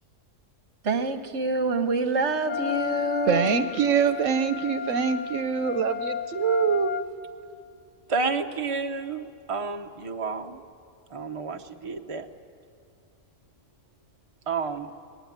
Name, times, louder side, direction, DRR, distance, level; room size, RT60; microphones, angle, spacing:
voice 1, 0.8-3.6, right 2 dB, 65° right, 1.6 m, -26 dB
Wind instrument woodwind instrument, 2.4-7.1, left 7 dB, 40° left, 0.8 m, -32 dB
voice 2, 3.3-6.9, right 7 dB, 80° right, 1.1 m, -24 dB
voice 3, 8.1-10.6 11.1-12.3 14.5-14.9, right 4 dB, 30° right, 0.9 m, -30 dB
23.5 x 19.0 x 9.5 m
omnidirectional pair, 1.3 m